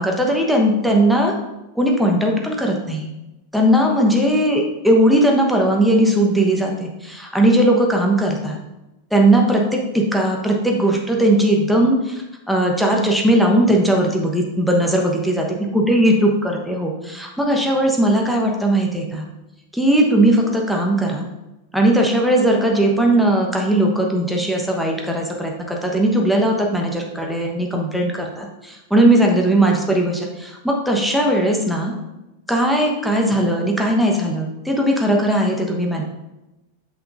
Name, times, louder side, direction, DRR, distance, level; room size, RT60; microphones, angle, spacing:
voice 1, 0.0-1.3 1.7-3.1 3.5-8.6 9.1-15.5 15.7-19.3 19.7-21.3 21.7-31.9 32.5-36.0, right 1 dB, ahead, 0 dB, 1.1 m, -18 dB
8.0 x 6.1 x 2.6 m, 0.99 s
figure-of-eight pair, 90°, 0 cm